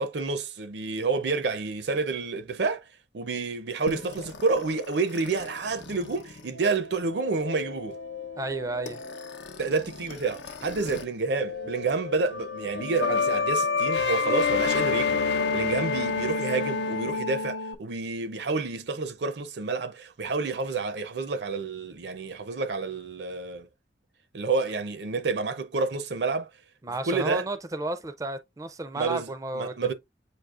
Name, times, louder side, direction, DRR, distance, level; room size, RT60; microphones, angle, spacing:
voice 1, 0.0-2.9 3.1-8.0 9.6-23.7 24.3-26.5 27.1-27.4 29.0-29.9, right 4 dB, 70° right, 0.6 m, -29 dB
sound 1, 3.9-11.0 11.3-17.7, left 4 dB, 80° left, 0.7 m, -30 dB
voice 2, 8.4-9.0 26.8-29.9, right 2 dB, 20° right, 0.4 m, -32 dB
7.8 x 2.8 x 2.4 m
head